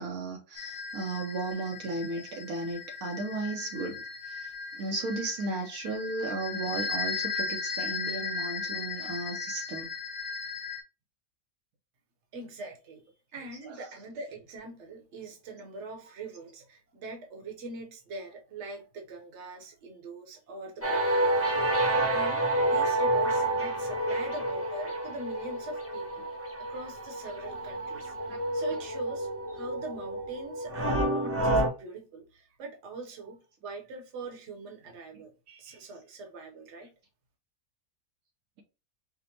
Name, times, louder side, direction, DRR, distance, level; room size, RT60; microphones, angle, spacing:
voice 1, 0.0-4.5 4.8-9.9 13.6-13.7, right 3 dB, 75° right, 1.1 m, -35 dB
sound 1, 0.5-10.8, left 4 dB, 65° left, 1.2 m, -36 dB
voice 2, 12.3-13.0 13.3-26.3 26.7-28.1 28.5-36.9, right 2 dB, 55° right, 1.1 m, -43 dB
sound 2, 20.8-31.7, right 1 dB, 15° right, 0.6 m, -29 dB
5.0 x 2.1 x 2.8 m
omnidirectional pair, 1.5 m